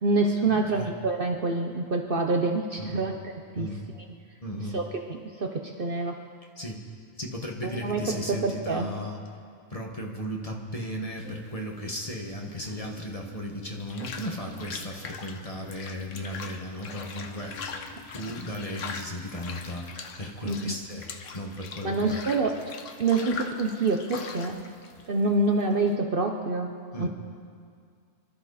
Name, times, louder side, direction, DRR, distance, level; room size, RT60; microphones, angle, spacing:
voice 1, 0.0-3.7 4.7-4.8 5.1-6.2 7.6-8.9 20.4-20.7 21.8-24.6 25.1-27.1, right 3 dB, 45° right, 3 dB, 1.0 m, -27 dB
voice 2, 0.5-0.9 2.8-3.0 3.5-3.8 4.4-4.8 6.6-6.8 7.2-9.2 9.7-17.8 18.1-22.2 26.9-27.1, equal, 25° left, 0 dB, 1.7 m, -36 dB
sound 1, 11.2-25.9, left 5 dB, 70° left, 1.3 m, -42 dB
sound 2, 12.8-19.4, left 3 dB, 50° left, 4.1 m, -51 dB
25.5 x 13.5 x 4.2 m, 2.2 s
omnidirectional pair, 1.4 m